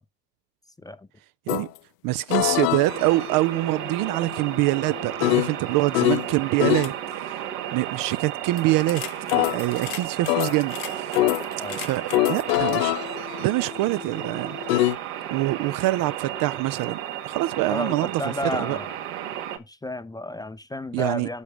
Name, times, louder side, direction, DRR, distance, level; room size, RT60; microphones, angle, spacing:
sound 1, 1.5-1.7 2.3-6.3 6.6-6.9 8.6-15.0, left 17 dB, 70° left, 1.1 m, -26 dB
voice 1, 2.0-6.9 7.2-7.3 7.7-9.0 9.3-11.2 11.7-12.9 13.4-14.6 15.3-18.8 20.9-21.3, right 18 dB, 45° right, 0.5 m, -25 dB
sound 2, 2.8-19.6, right 11 dB, 80° right, 1.8 m, -33 dB
voice 2, 17.7-18.9 19.6-21.4, left 1 dB, 10° left, 0.5 m, -32 dB
8.2 x 5.9 x 4.8 m
supercardioid pair, 105°, 48 cm